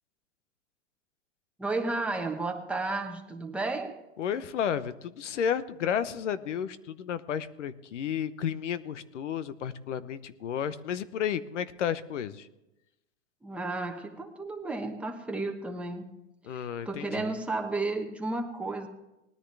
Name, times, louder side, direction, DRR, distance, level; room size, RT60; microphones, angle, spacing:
voice 1, 1.6-4.0 13.4-16.1 16.5-18.9, right 2 dB, 5° right, 2 dB, 1.2 m, -33 dB
voice 2, 4.2-12.5 16.5-17.3, left 8 dB, 80° left, 14 dB, 0.9 m, -32 dB
19.0 x 10.0 x 3.4 m, 0.95 s
hypercardioid pair, 130°, 36 cm